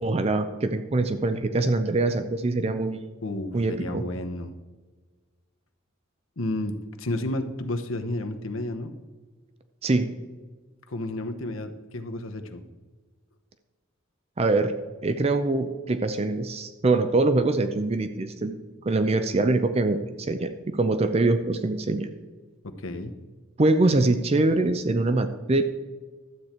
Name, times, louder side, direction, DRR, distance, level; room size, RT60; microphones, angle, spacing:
voice 1, 0.0-3.1 3.5-4.0 9.8-10.2 14.4-14.7 15.0-18.6 18.9-22.1 23.6-25.6, right 2 dB, 30° right, 9 dB, 0.5 m, -24 dB
voice 2, 3.2-4.5 6.4-8.9 10.9-12.6 22.6-23.1, left 1 dB, 85° left, 6 dB, 1.0 m, -31 dB
12.5 x 8.2 x 4.4 m, 1.4 s
head